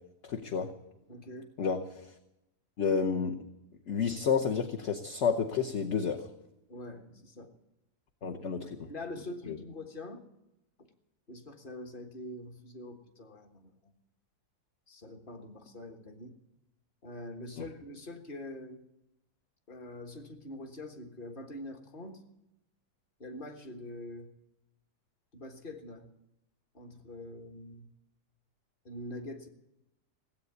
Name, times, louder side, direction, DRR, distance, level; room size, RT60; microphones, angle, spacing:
voice 1, 0.2-0.7 1.6-2.1 2.8-3.4 3.9-6.3 8.2-8.7 9.5-9.6, left 6 dB, 50° left, 3 dB, 1.2 m, -30 dB
voice 2, 1.1-1.5 6.7-7.5 8.8-10.2 11.3-13.9 14.9-16.4 17.0-18.9 19.7-22.2 23.2-24.3 25.3-26.1 26.7-27.9 28.8-29.5, left 1 dB, 35° left, 5 dB, 1.6 m, -44 dB
17.5 x 8.4 x 9.4 m, 0.89 s
omnidirectional pair, 1.7 m